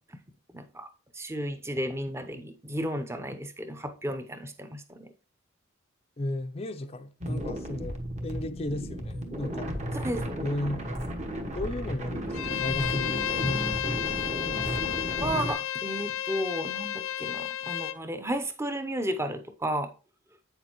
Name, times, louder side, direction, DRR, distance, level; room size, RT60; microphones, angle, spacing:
voice 1, 0.5-0.9 1.1-5.1 10.0-10.2 15.2-19.9, right 1 dB, 10° right, 0.7 m, -33 dB
voice 2, 6.2-9.7 10.4-10.9 11.5-14.1, left 1 dB, 30° left, 0.4 m, -34 dB
sound 1, 7.2-15.5, equal, 35° right, 1.1 m, -34 dB
Bowed string instrument, 12.3-18.0, left 11 dB, 80° left, 0.5 m, -32 dB
8.5 x 6.7 x 3.0 m
head